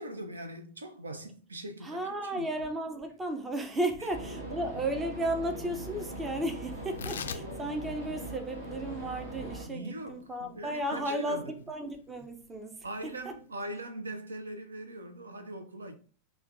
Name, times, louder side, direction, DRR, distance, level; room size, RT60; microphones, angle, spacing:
voice 1, 0.0-2.4 9.7-11.6 12.8-16.0, right 1 dB, 75° right, 0.5 m, -41 dB
voice 2, 1.8-13.3, right 1 dB, 15° right, 0.5 m, -34 dB
sound 1, 4.1-9.7, right 1 dB, 55° right, 1.3 m, -41 dB
Tearing, 6.8-13.5, left 7 dB, 65° left, 0.3 m, -46 dB
5.5 x 2.3 x 2.5 m
figure-of-eight pair, 90°, 0 cm